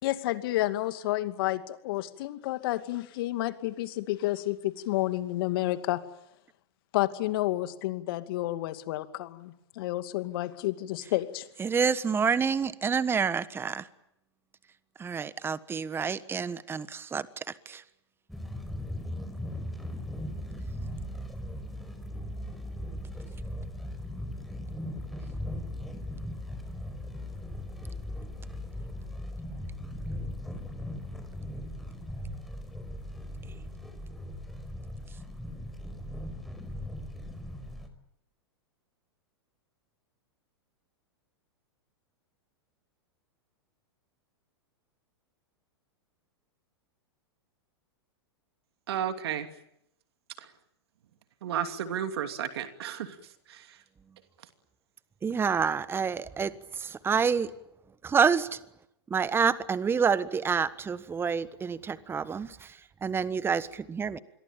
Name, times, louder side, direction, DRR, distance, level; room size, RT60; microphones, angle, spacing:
voice 1, 0.0-6.0 6.9-11.5, left 16 dB, 55° left, 10 dB, 2.4 m, -30 dB
voice 2, 11.6-13.9 15.0-17.8 55.2-57.5 58.0-58.6 59.1-64.2, right 6 dB, 15° right, 16 dB, 1.3 m, -28 dB
sound 1, 18.3-37.9, left 1 dB, ahead, 4.9 m, -38 dB
voice 3, 48.9-49.5 50.4-50.5 51.4-53.1 53.5-53.7, right 9 dB, 65° right, 8 dB, 2.8 m, -32 dB
27.5 x 22.5 x 9.0 m, 0.79 s
hypercardioid pair, 110°, 14 cm